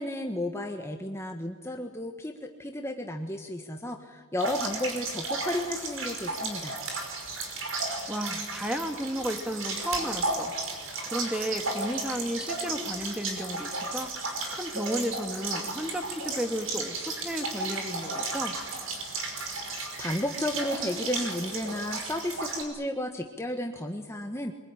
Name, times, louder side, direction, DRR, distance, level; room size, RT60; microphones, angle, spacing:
voice 1, 0.0-6.8 19.5-19.7 20.0-24.5, left 1 dB, 15° left, 3 dB, 1.4 m, -33 dB
sound 1, 4.4-22.6, right 3 dB, 80° right, 5.5 m, -34 dB
voice 2, 8.1-10.5 11.1-18.6, equal, 5° right, 6 dB, 2.0 m, -33 dB
24.5 x 22.5 x 10.0 m, 1.4 s
head